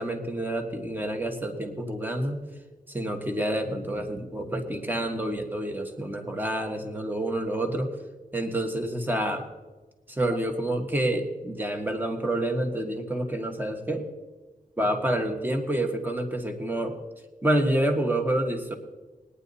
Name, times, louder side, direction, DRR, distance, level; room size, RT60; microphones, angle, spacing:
voice 1, 0.0-2.4 2.9-7.9 8.3-9.5 10.1-14.1 14.8-17.0 17.4-18.7, right 1 dB, 15° right, 3 dB, 1.6 m, -28 dB
20.5 x 9.9 x 4.1 m, 1.2 s
wide cardioid pair, 100°, 14 cm